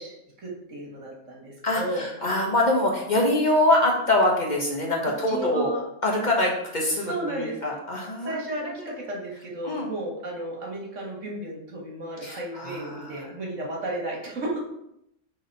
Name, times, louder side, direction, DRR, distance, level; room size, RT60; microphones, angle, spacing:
voice 1, 0.0-2.1 5.3-5.8 7.0-7.6 8.2-14.6, right 1 dB, 75° right, -2 dB, 2.0 m, -33 dB
voice 2, 1.6-5.7 6.0-8.5 8.8-8.9 9.6-9.9 12.2-13.3, left 1 dB, 35° left, -2 dB, 1.4 m, -24 dB
6.3 x 3.8 x 5.4 m, 0.80 s
omnidirectional pair, 1.3 m